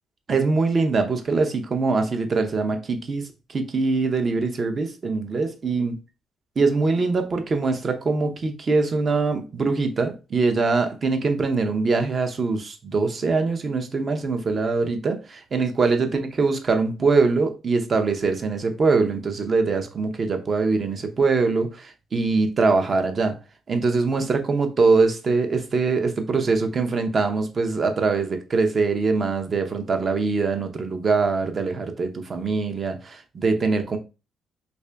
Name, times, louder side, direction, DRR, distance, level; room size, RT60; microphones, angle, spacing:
voice 1, 0.3-5.9 6.6-23.4 23.7-34.0, right 4 dB, 40° right, 0.7 m, -23 dB
3.3 x 2.6 x 3.4 m
cardioid pair, 90°, 0 cm